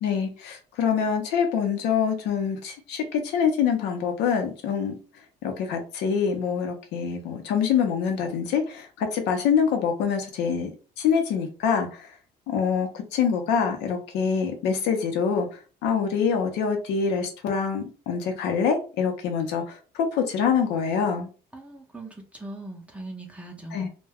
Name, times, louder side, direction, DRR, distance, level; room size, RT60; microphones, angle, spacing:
voice 1, 0.0-4.9 5.4-10.7 11.0-12.1 12.5-21.3 23.7-23.9, left 6 dB, 90° left, 5 dB, 0.7 m, -25 dB
voice 2, 21.5-23.9, right 2 dB, 5° right, 0 dB, 0.5 m, -40 dB
2.2 x 2.2 x 3.4 m, 0.36 s
cardioid pair, 110°, 17 cm